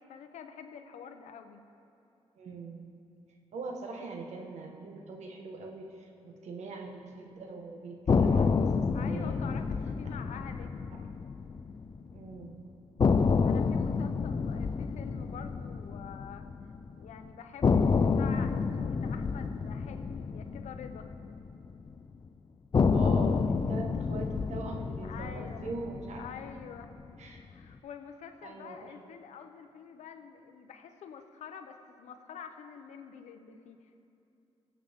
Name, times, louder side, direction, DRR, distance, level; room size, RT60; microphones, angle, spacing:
voice 1, 0.0-1.6 8.9-10.7 13.2-16.5 17.0-21.1 25.0-25.7 26.2-26.9 27.4-34.0, left 7 dB, 90° left, 7 dB, 0.9 m, -47 dB
voice 2, 2.4-2.8 3.5-9.4 10.2-10.3 12.1-12.6 22.9-26.2 27.2-27.4 28.4-28.9, right 3 dB, 75° right, 2 dB, 1.5 m, -42 dB
sound 1, 8.1-12.2 12.4-12.5 13.0-17.1 17.6-22.0 22.7-27.1, left 5 dB, 35° left, 0.4 m, -29 dB
21.0 x 8.2 x 3.7 m, 2.8 s
cardioid pair, 90°, 12 cm